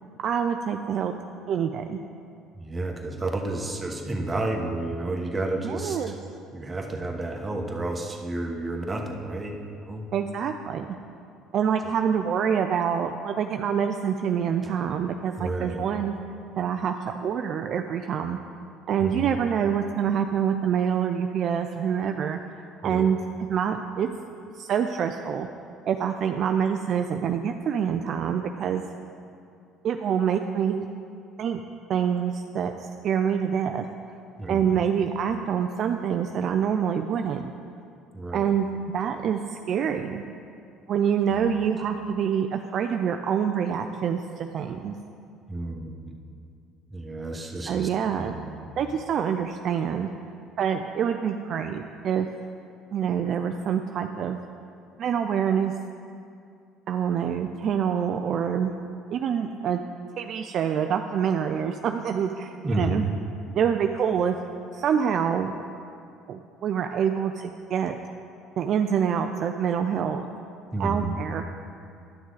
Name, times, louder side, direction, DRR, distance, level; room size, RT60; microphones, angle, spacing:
voice 1, 0.2-1.1 1.5-2.0 5.6-6.1 10.1-11.0 11.5-16.1 16.6-18.4 18.9-22.4 22.8-23.2 23.5-24.1 24.6-25.5 25.9-28.8 29.8-30.9 31.4-31.6 31.9-33.9 34.5-37.5 38.3-38.7 38.9-40.2 40.9-45.0 47.7-48.4 48.8-50.1 50.6-52.3 52.9-54.4 55.0-55.7 56.9-58.7 59.1-59.8 60.2-63.1 63.5-64.4 64.7-65.5 66.3-68.0 68.6-70.3 70.8-71.4, right 8 dB, 55° right, 6 dB, 0.4 m, -26 dB
voice 2, 2.5-6.1 6.5-10.1 15.4-15.8 19.0-19.4 22.8-23.1 34.4-34.8 38.1-38.5 41.3-41.4 45.5-46.1 46.9-47.9 48.1-48.7 62.6-63.1 70.7-71.2, right 2 dB, 20° right, 1 dB, 1.2 m, -31 dB
11.0 x 6.2 x 4.0 m, 2.5 s
supercardioid pair, 75°, 0 cm